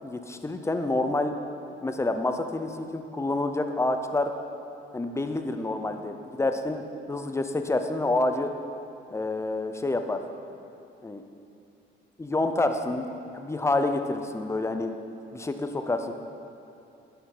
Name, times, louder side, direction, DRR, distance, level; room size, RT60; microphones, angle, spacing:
voice 1, 0.0-1.3 1.8-4.3 4.9-6.8 7.1-8.5 9.1-10.2 11.0-11.2 12.2-14.9 15.3-16.1, left 2 dB, 15° left, 7 dB, 0.7 m, -28 dB
9.4 x 5.8 x 6.6 m, 2.7 s
cardioid pair, 90°, 20 cm